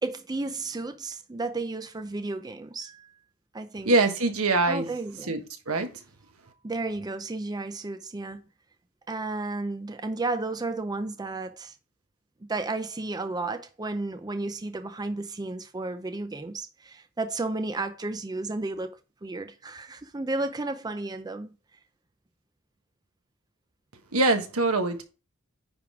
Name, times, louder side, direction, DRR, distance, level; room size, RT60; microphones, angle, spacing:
voice 1, 0.0-3.1 3.5-3.9 4.7-5.3 6.6-8.4 9.1-11.8 12.4-21.5, right 2 dB, 20° right, 0.5 m, -33 dB
voice 2, 3.8-4.9 5.3-5.4 5.7-5.9 24.1-25.0, right 2 dB, 85° right, 1.3 m, -23 dB
9.7 x 3.7 x 4.8 m
head